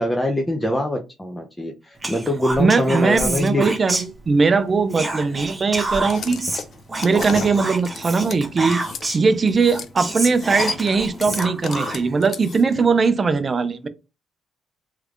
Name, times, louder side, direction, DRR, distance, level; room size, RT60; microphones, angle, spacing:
voice 1, 0.0-3.7, left 1 dB, 10° left, 0.6 m, -23 dB
Whispering, 2.0-4.5 4.9-9.3 9.7-9.8 10.0-12.2, right 2 dB, 20° right, 0.9 m, -28 dB
voice 2, 2.6-6.5 7.0-8.8 9.1-13.9, right 4 dB, 35° right, 0.5 m, -20 dB
sound 1, 5.9-9.0 9.5-9.9 10.2-12.8, left 5 dB, 55° left, 0.5 m, -33 dB
3.2 x 3.2 x 2.4 m
cardioid pair, 90°, 0 cm